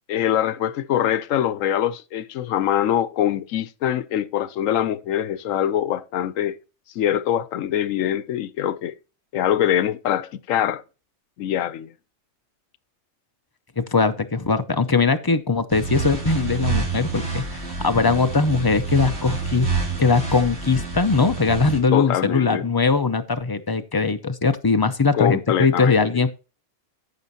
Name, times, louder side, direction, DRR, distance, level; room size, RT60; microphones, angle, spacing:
voice 1, 0.1-6.6 7.0-8.9 9.3-10.8 11.4-11.9 21.9-22.7 25.1-26.2, left 10 dB, 85° left, 1.0 m, -23 dB
voice 2, 13.8-19.7 20.0-26.3, left 4 dB, 30° left, 0.4 m, -20 dB
sound 1, 15.7-21.8, right 4 dB, 55° right, 2.7 m, -28 dB
14.5 x 6.3 x 2.7 m
omnidirectional pair, 1.4 m